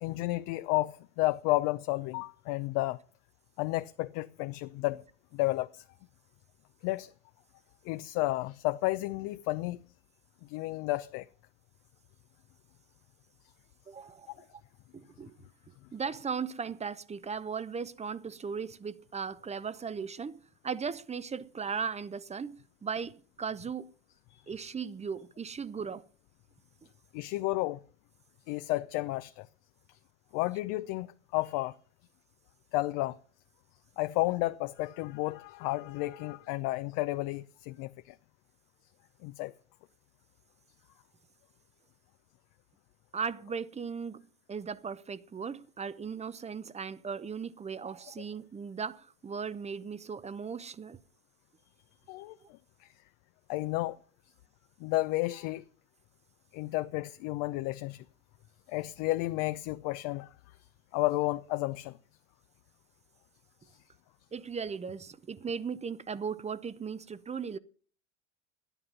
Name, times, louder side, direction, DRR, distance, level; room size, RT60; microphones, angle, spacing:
voice 1, 0.0-3.0 3.6-5.0 5.3-5.8 6.8-7.1 7.9-9.8 10.5-11.3 24.3-24.6 27.1-27.8 28.5-29.5 30.3-31.7 32.7-33.2 34.0-38.1 39.2-39.5 52.1-52.3 53.5-54.0 54.8-55.6 56.5-58.0 58.7-60.3 60.9-62.0, left 19 dB, 60° left, 0.7 m, -32 dB
voice 2, 13.9-14.3 14.9-15.3 15.9-23.9 24.5-26.0 43.1-51.0 64.3-67.6, right 6 dB, 20° right, 0.7 m, -37 dB
12.5 x 10.0 x 5.4 m
hypercardioid pair, 85°, 37 cm